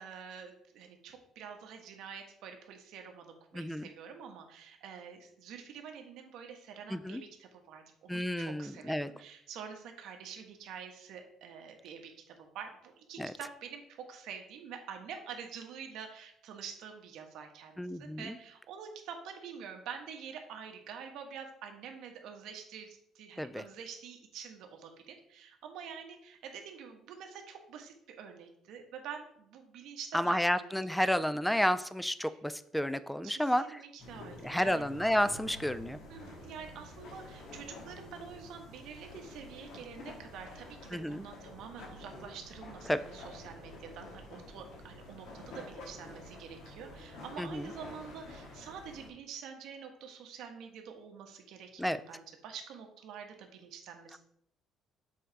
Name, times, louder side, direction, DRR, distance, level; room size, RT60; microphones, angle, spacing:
voice 1, 0.0-31.0 31.3-31.4 32.2-32.4 33.2-35.0 36.1-54.2, right 7 dB, 70° right, 4 dB, 1.1 m, -47 dB
voice 2, 3.5-3.9 6.9-7.2 8.1-9.1 13.2-13.3 17.8-18.3 23.4-23.6 30.1-33.6 34.4-36.0 40.9-41.2 42.9-43.0 47.4-47.7 51.8-52.0, equal, 5° left, 14 dB, 0.3 m, -31 dB
sound 1, 34.0-49.1, left 2 dB, 70° left, 1.8 m, -49 dB
7.0 x 3.8 x 4.6 m, 0.71 s
cardioid pair, 145°, 0 cm